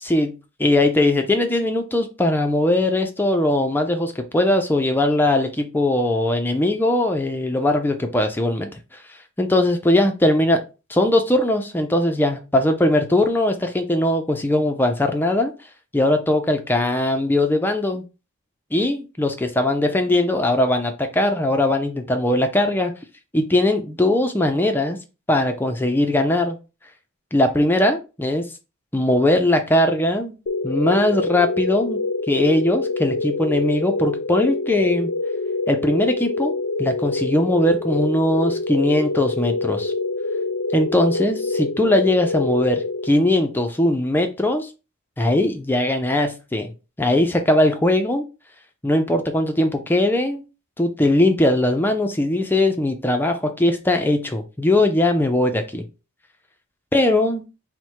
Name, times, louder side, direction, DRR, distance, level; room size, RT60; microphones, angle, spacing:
voice 1, 0.0-0.3 0.6-8.8 9.4-10.6 10.9-15.5 15.9-18.0 18.7-22.9 23.3-25.0 25.3-26.6 27.3-28.4 28.9-30.3 30.6-32.0 32.3-35.1 35.7-36.5 36.8-39.9 40.7-44.7 45.2-46.7 47.0-48.2 48.8-50.4 50.8-55.8 56.9-57.4, left 1 dB, 10° left, 5 dB, 0.4 m, -20 dB
sound 1, 30.5-43.6, left 3 dB, 60° left, 0.5 m, -26 dB
4.5 x 2.1 x 4.4 m, 0.31 s
head